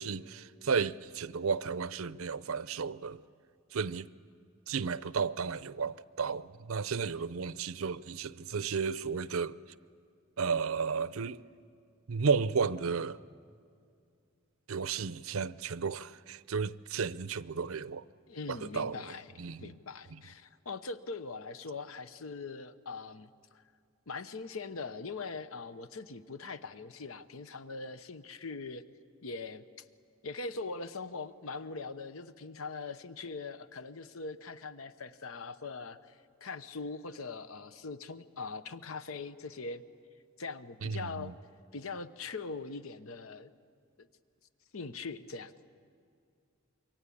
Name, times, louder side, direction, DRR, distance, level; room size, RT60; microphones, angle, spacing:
voice 1, 0.0-3.2 3.7-4.1 4.7-9.6 10.4-11.4 12.1-13.2 14.7-18.0 18.5-19.7 20.1-20.2 40.8-41.3, right 5 dB, 80° right, 0.6 m, -33 dB
voice 2, 18.3-23.6 24.1-28.8 29.2-29.8 30.2-39.8 40.4-41.3 41.7-43.5 44.0-44.1 44.7-45.5, left 4 dB, 80° left, 0.9 m, -42 dB
27.0 x 23.5 x 8.6 m
head